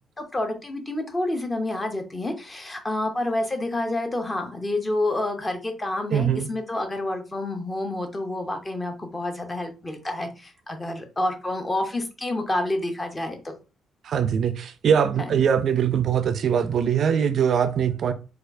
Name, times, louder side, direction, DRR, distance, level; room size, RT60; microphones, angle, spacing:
voice 1, 0.2-13.5 15.2-15.3, left 1 dB, 20° left, 0.7 m, -28 dB
voice 2, 6.1-6.5 14.0-18.1, right 8 dB, 60° right, 0.3 m, -22 dB
4.2 x 2.3 x 2.6 m
cardioid pair, 130°, 0 cm